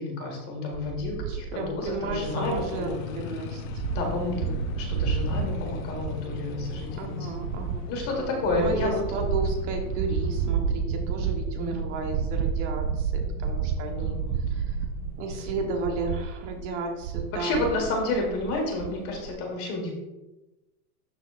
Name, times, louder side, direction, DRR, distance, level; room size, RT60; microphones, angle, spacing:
voice 1, 0.0-3.1 3.9-7.2 7.9-9.0 10.0-10.1 11.6-12.0 13.9-14.4 17.3-19.9, left 2 dB, 30° left, 1 dB, 1.6 m, -30 dB
sound 1, 0.7-19.3, right 6 dB, 75° right, 0.6 m, -31 dB
voice 2, 1.3-3.8 7.0-7.9 8.5-14.2 14.5-14.8 15.2-17.7, right 3 dB, 50° right, 2 dB, 1.3 m, -33 dB
sound 2, 2.2-10.5, left 7 dB, 60° left, 0.7 m, -40 dB
sound 3, 4.5-15.9, left 2 dB, 30° right, 1.9 m, -45 dB
12.0 x 4.1 x 2.5 m, 1.0 s
supercardioid pair, 160°, 45 cm